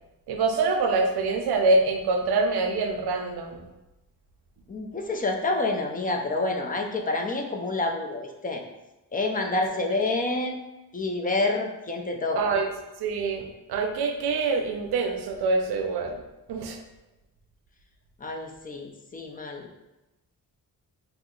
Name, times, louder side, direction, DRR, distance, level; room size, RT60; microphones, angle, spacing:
voice 1, 0.3-3.6 12.3-12.7 13.0-16.2 16.5-16.8, right 3 dB, 90° right, 4 dB, 0.5 m, -25 dB
voice 2, 4.7-8.6 9.1-10.6 10.9-12.5 18.2-19.7, left 2 dB, 25° left, 2 dB, 0.4 m, -28 dB
2.7 x 2.0 x 3.7 m, 1.0 s
cardioid pair, 95°, 37 cm